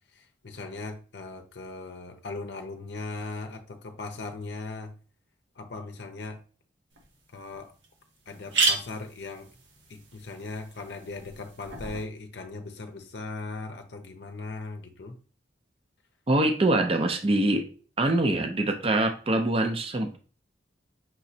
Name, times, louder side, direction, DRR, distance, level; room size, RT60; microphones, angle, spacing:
voice 1, 0.1-4.9 5.6-6.4 7.3-7.7 8.3-9.5 9.9-15.2, left 3 dB, 65° left, 0.6 m, -38 dB
sound 1, 7.0-7.1 7.5-7.6 7.8-7.9 8.3-12.0, right 4 dB, 85° right, 1.2 m, -32 dB
voice 2, 16.3-17.6 18.0-20.2, right 1 dB, 30° right, 0.5 m, -24 dB
5.9 x 3.0 x 2.7 m
head